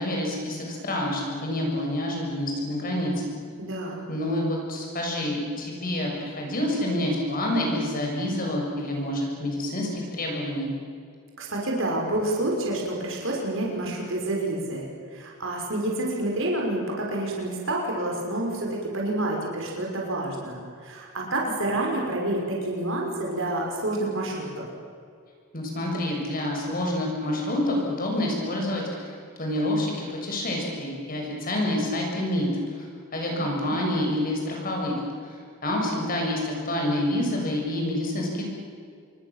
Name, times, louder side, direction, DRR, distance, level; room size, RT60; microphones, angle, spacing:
voice 1, 0.0-3.3 4.1-10.7 25.5-32.9 33.1-38.5, left 1 dB, 40° left, 0 dB, 6.9 m, -28 dB
voice 2, 3.6-4.0 11.4-24.7 33.3-33.8, right 1 dB, 60° right, -1 dB, 5.8 m, -28 dB
27.5 x 23.0 x 7.5 m, 2.2 s
head